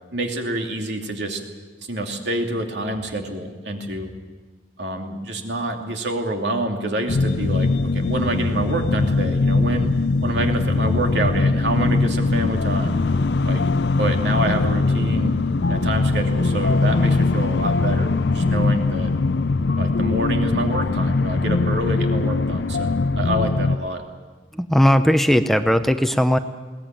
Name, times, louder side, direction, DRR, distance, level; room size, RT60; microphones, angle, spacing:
voice 1, 0.1-1.4 1.9-4.1 4.8-9.9 10.2-13.0 13.5-13.6 14.0-15.3 15.7-19.1 19.8-24.0, right 1 dB, 70° right, 3 dB, 2.7 m, -27 dB
sound 1, 7.1-23.8, left 3 dB, 65° left, 0.6 m, -21 dB
voice 2, 24.5-26.4, equal, ahead, 9 dB, 0.6 m, -17 dB
21.5 x 17.5 x 9.1 m, 1.4 s
head